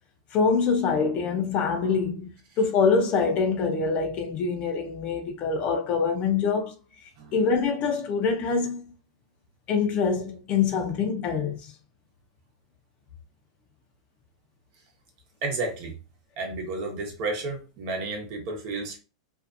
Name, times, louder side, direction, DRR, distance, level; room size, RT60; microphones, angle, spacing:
voice 1, 0.3-2.3 2.6-6.7 7.3-8.8 9.7-11.7, left 5 dB, 35° left, 0.6 m, -25 dB
voice 2, 15.4-15.9 16.4-19.0, right 3 dB, 50° right, 1.0 m, -32 dB
2.6 x 2.4 x 2.5 m
hypercardioid pair, 130°, 3 cm